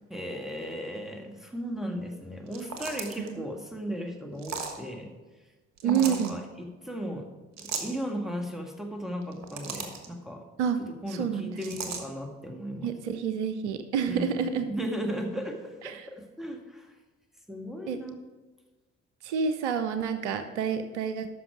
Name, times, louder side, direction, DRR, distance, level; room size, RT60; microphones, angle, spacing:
voice 1, 0.1-5.1 5.8-7.3 7.6-10.4 10.8-12.9 14.1-16.9 17.5-18.1, equal, ahead, 2 dB, 1.9 m, -36 dB
sound 1, 2.5-3.3 4.4-4.8 5.8-6.3 7.6-8.0 9.2-10.1 11.6-12.0, right 6 dB, 50° right, 1.4 m, -36 dB
voice 2, 5.8-6.4 10.6-10.8 11.2-11.6 12.8-14.7 15.8-16.1 17.9-18.0 19.2-21.3, right 7 dB, 75° right, 10 dB, 0.6 m, -28 dB
13.5 x 6.1 x 4.9 m, 1.2 s
figure-of-eight pair, 45°, 35 cm